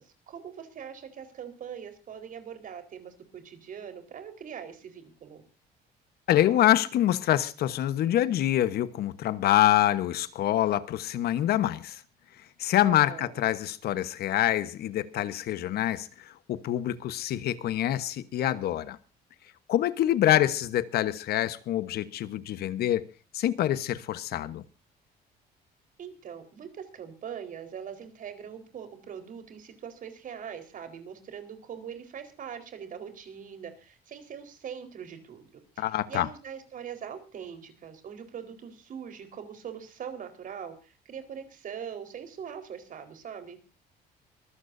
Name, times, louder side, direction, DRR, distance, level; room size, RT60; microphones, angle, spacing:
voice 1, 0.0-5.4 12.8-13.4 26.0-35.5 35.8-43.6, right 8 dB, 50° right, 4.3 m, -42 dB
voice 2, 6.3-12.0 12.6-19.0 19.7-23.1 23.3-24.6 35.8-36.3, left 13 dB, 70° left, 1.2 m, -26 dB
24.0 x 15.0 x 2.7 m
cardioid pair, 110°, 17 cm